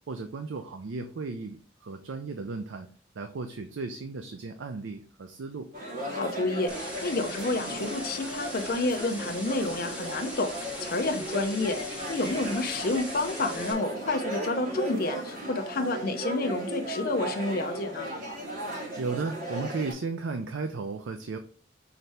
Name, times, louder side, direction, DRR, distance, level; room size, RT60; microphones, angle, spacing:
voice 1, 0.1-2.9 3.2-5.7 19.0-21.4, right 4 dB, 80° right, 7 dB, 0.5 m, -35 dB
sound 1, 5.7-19.9, right 1 dB, 45° right, 1.3 m, -36 dB
voice 2, 6.1-18.1, left 2 dB, 55° left, 6 dB, 0.7 m, -30 dB
sound 2, 6.7-13.7, left 1 dB, 5° right, 1.4 m, -41 dB
5.9 x 2.7 x 3.3 m, 0.42 s
head